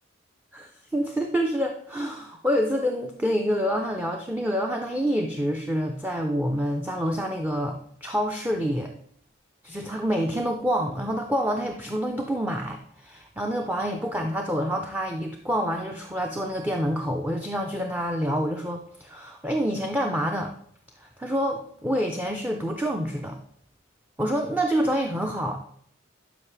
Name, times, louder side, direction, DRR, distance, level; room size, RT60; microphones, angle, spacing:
voice 1, 0.5-8.9 9.6-20.5 21.0-23.4 24.2-25.6, equal, 10° right, 3 dB, 0.5 m, -27 dB
12.0 x 5.4 x 3.3 m, 0.64 s
head